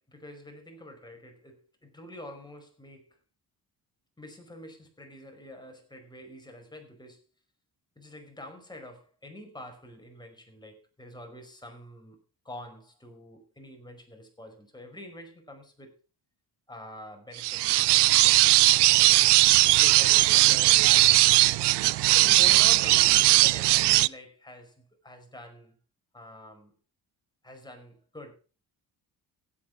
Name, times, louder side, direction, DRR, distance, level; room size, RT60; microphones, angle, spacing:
voice 1, 0.0-3.2 4.2-7.2 7.9-12.2 12.4-15.9 16.7-18.7 19.0-19.3 19.8-21.5 22.1-25.7 26.1-26.7 27.4-28.4, left 1 dB, 10° left, 5.1 m, -46 dB
sound 1, 17.4-24.1, right 19 dB, 85° right, 0.5 m, -19 dB
16.0 x 8.5 x 4.8 m
cardioid pair, 90°, 40 cm